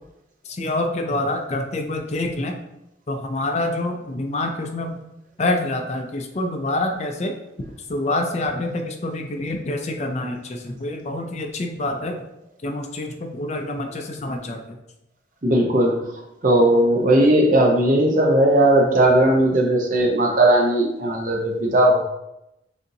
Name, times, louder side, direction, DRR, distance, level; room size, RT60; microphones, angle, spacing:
voice 1, 0.4-2.6 3.1-5.0 5.4-7.3 7.9-12.2 12.6-14.8, left 2 dB, 35° left, 4 dB, 0.4 m, -26 dB
voice 2, 15.4-16.0 16.4-22.0, right 1 dB, 45° right, 1 dB, 0.8 m, -17 dB
6.6 x 2.7 x 2.6 m, 0.90 s
head